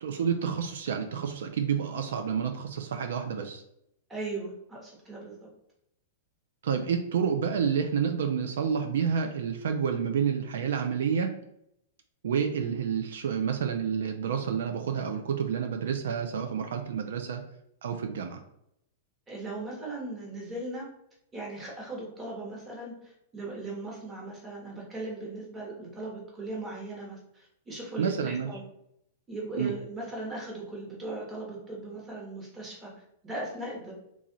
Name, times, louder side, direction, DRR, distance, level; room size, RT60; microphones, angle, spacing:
voice 1, 0.0-3.6 6.6-11.3 12.2-17.4 17.8-18.4 28.0-28.5 29.6-29.7, right 7 dB, 80° right, 5 dB, 0.4 m, -29 dB
voice 2, 4.1-5.5 19.3-20.9 21.3-28.6 29.3-32.9 33.2-33.9, right 2 dB, 15° right, -3 dB, 1.1 m, -38 dB
3.1 x 2.4 x 3.9 m, 0.76 s
hypercardioid pair, 155°, 0 cm